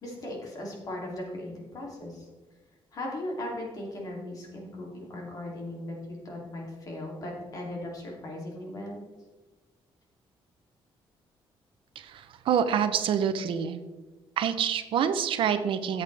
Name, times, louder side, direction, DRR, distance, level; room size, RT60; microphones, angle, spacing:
voice 1, 0.0-2.3 2.9-9.0, left 1 dB, 40° left, -2 dB, 3.0 m, -38 dB
voice 2, 12.0-13.8 14.4-16.0, right 8 dB, 65° right, 9 dB, 0.8 m, -27 dB
13.5 x 8.2 x 3.4 m, 1.3 s
cardioid pair, 170°, 9 cm